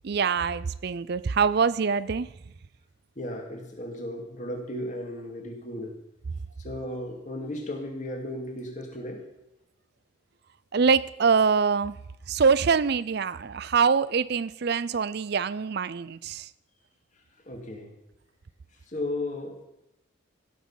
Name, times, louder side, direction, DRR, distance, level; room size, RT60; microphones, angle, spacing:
voice 1, 0.0-2.3 10.7-12.0 12.3-16.5, right 5 dB, 50° right, 18 dB, 0.4 m, -24 dB
voice 2, 3.2-5.9 6.6-9.2 17.5-17.9 18.9-19.6, left 1 dB, 35° left, 1 dB, 2.4 m, -35 dB
16.0 x 6.2 x 7.3 m, 0.88 s
head